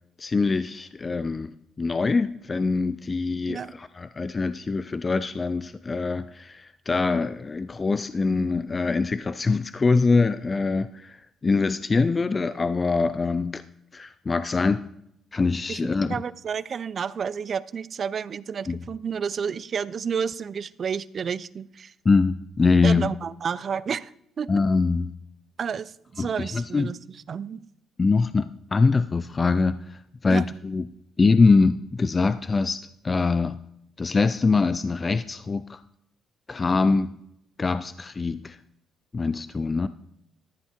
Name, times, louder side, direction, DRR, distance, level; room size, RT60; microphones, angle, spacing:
voice 1, 0.2-13.6 13.9-14.8 15.3-16.2 18.7-18.8 22.1-23.1 24.5-25.1 26.2-26.9 28.0-30.8 31.2-33.6 34.0-35.8 36.5-37.1 37.6-38.6 39.1-39.9, left 4 dB, 30° left, 13 dB, 0.4 m, -23 dB
voice 2, 15.7-21.9 22.8-24.1 24.4-24.5 25.6-27.6 30.3-30.4, right 6 dB, 50° right, 18 dB, 0.4 m, -31 dB
13.5 x 7.1 x 4.4 m, 0.78 s
cardioid pair, 90°, 0 cm